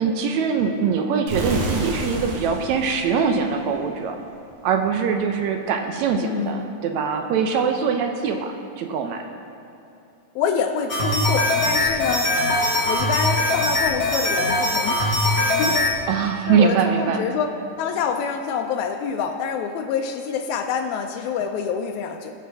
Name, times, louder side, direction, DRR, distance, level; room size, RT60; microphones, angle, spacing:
voice 1, 0.0-4.2 4.6-9.2 16.1-17.2, right 6 dB, 75° right, 4 dB, 1.7 m, -22 dB
sound 1, 1.3-4.1, right 2 dB, 55° right, 1.6 m, -30 dB
voice 2, 6.2-6.7 10.4-12.3 12.9-15.0 15.6-15.9 16.5-17.5 17.8-22.3, left 6 dB, 80° left, 3 dB, 1.7 m, -26 dB
sound 2, 10.9-15.9, left 1 dB, 55° left, 1.1 m, -21 dB
19.5 x 7.1 x 3.5 m, 2.8 s
omnidirectional pair, 3.8 m